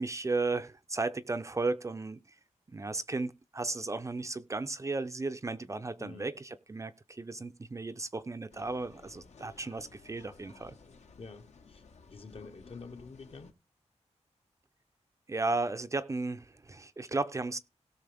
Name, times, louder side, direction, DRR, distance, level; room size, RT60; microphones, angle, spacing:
voice 1, 0.0-2.2 2.7-10.7 15.3-17.6, right 3 dB, 25° right, 0.5 m, -34 dB
voice 2, 6.0-6.3 11.2-13.5, left 4 dB, 50° left, 1.3 m, -48 dB
sound 1, 8.5-13.5, left 4 dB, 70° left, 1.5 m, -56 dB
17.5 x 6.3 x 3.4 m
wide cardioid pair, 170°, 12 cm